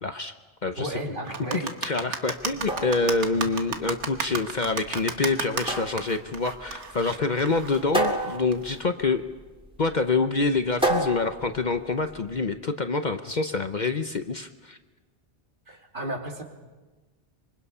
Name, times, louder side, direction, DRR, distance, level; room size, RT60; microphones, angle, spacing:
voice 1, 0.0-0.3 0.6-0.9 1.6-9.2 9.8-14.8, left 3 dB, 45° left, 8 dB, 0.9 m, -26 dB
voice 2, 0.8-1.7 15.7-16.4, right 1 dB, 50° right, 1 dB, 2.8 m, -33 dB
sound 1, 1.3-8.8, right 5 dB, 80° right, 1.6 m, -33 dB
sound 2, 2.5-12.4, right 2 dB, 5° right, 2.7 m, -32 dB
26.0 x 24.0 x 5.6 m, 1.3 s
omnidirectional pair, 1.2 m